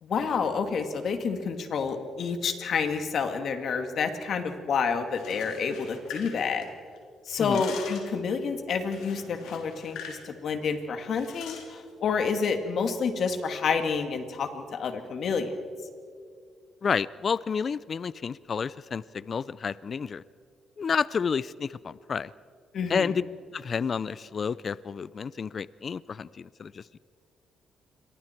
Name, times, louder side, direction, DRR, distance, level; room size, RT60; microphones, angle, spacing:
voice 1, 0.0-6.6 7.3-15.5 22.7-23.1, left 5 dB, 60° left, 6 dB, 2.3 m, -29 dB
sound 1, 5.1-7.0 7.3-8.2 8.9-10.2 10.5-10.7 11.1-11.7, left 6 dB, 90° left, 3.3 m, -42 dB
voice 2, 16.8-20.2 20.8-22.3 22.9-23.2 23.5-27.0, left 6 dB, 45° left, 19 dB, 0.4 m, -30 dB
28.0 x 22.5 x 4.6 m, 2.1 s
cardioid pair, 90°, 0 cm